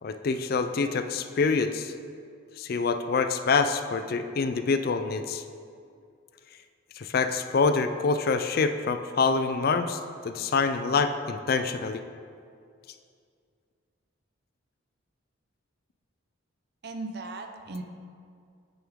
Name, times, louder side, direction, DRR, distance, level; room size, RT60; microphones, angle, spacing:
voice 1, 0.0-1.9 2.6-5.4 7.0-10.0 10.2-12.0, left 4 dB, 45° left, 9 dB, 0.3 m, -26 dB
voice 2, 16.8-17.8, right 2 dB, 50° right, 5 dB, 0.6 m, -37 dB
8.7 x 7.0 x 3.6 m, 2.3 s
head